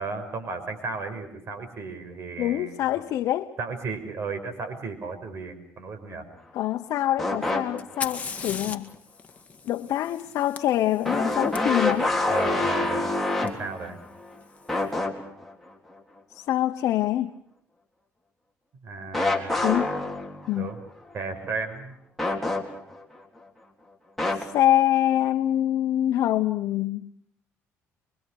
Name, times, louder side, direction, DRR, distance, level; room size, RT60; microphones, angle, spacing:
voice 1, 0.0-2.8 3.6-6.3 12.3-13.1 13.4-14.0 18.8-19.5 20.5-20.8 21.1-21.9, right 4 dB, 50° right, 7 dB, 5.6 m, -34 dB
voice 2, 2.4-3.5 6.5-8.9 9.6-12.1 16.3-17.3 19.6-20.0 20.5-20.7 24.4-27.1, left 13 dB, 75° left, 5 dB, 1.0 m, -25 dB
sound 1, 7.2-8.0 8.5-8.6 11.0-14.3 14.7-15.5 19.1-20.7 22.2-23.0 24.2-24.4, left 2 dB, 5° left, 3.9 m, -26 dB
Fire, 7.8-11.6 13.5-13.6 14.4-14.8, left 5 dB, 25° left, 2.0 m, -38 dB
25.5 x 24.0 x 6.5 m, 0.72 s
cardioid pair, 105°, 5 cm